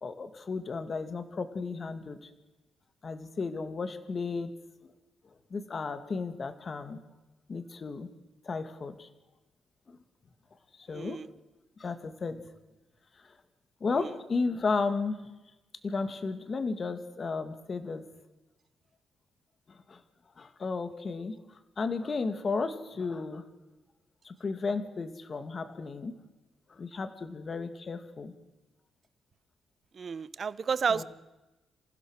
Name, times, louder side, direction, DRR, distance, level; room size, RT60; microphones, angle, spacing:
voice 1, 0.0-2.3 3.0-4.5 5.5-7.0 7.5-8.1 8.4-9.1 9.9-10.0 10.8-11.2 11.8-12.4 13.2-13.3 13.8-15.2 15.8-18.1 19.7-20.0 20.4-21.4 21.8-23.4 24.2-26.2 26.7-28.3 30.9-31.0, left 4 dB, 35° left, 9 dB, 2.0 m, -34 dB
voice 2, 30.0-31.0, right 6 dB, 40° right, 18 dB, 0.8 m, -30 dB
28.0 x 16.0 x 6.5 m, 1.1 s
cardioid pair, 135°, 0 cm